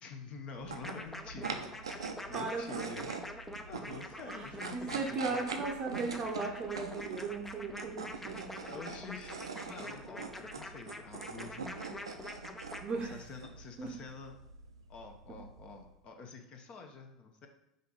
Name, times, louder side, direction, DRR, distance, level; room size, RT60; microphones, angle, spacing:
voice 1, 0.0-3.1 3.7-5.4 8.6-9.4 9.7-11.7 13.0-14.4 14.9-17.5, left 4 dB, 40° left, 4 dB, 0.7 m, -48 dB
sound 1, 0.6-15.9, right 4 dB, 80° right, 0.4 m, -44 dB
sound 2, 0.8-12.8, left 1 dB, 10° left, 0.4 m, -45 dB
voice 2, 2.3-2.9 4.3-4.5 4.7-8.5 12.8-13.2 13.8-13.9, right 4 dB, 35° right, 0 dB, 0.6 m, -37 dB
5.2 x 2.6 x 3.8 m, 0.83 s
figure-of-eight pair, 75°, 3 cm